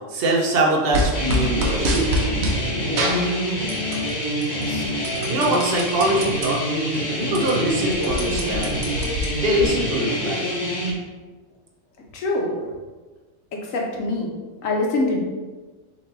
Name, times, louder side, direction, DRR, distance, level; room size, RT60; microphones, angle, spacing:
voice 1, 0.1-3.1 5.3-8.8 9.1-10.6, right 1 dB, 50° right, -1 dB, 0.9 m, -23 dB
sound 1, 0.9-2.6 3.0-4.1 4.4-6.5 6.9-7.0 7.2-9.7, right 1 dB, 80° right, 1.2 m, -26 dB
sound 2, 1.1-10.9, equal, 35° left, 1.1 m, -26 dB
voice 2, 2.8-3.2 4.7-4.9 12.1-12.7 13.5-14.3 14.6-15.2, left 2 dB, 70° left, 0 dB, 1.2 m, -25 dB
4.5 x 2.7 x 3.9 m, 1.3 s
omnidirectional pair, 1.4 m